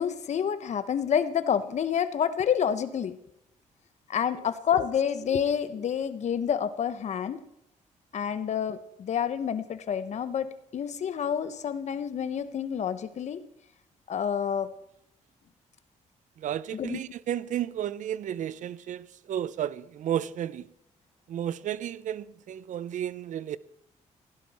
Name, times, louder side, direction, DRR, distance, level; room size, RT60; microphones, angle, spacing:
voice 1, 0.0-3.2 4.1-7.4 8.1-13.4 14.1-14.7 16.7-17.0, left 8 dB, 60° left, 0.9 m, -28 dB
voice 2, 16.4-20.6 21.3-23.6, right 10 dB, 70° right, 0.5 m, -32 dB
15.5 x 12.0 x 4.2 m
cardioid pair, 95°, 13 cm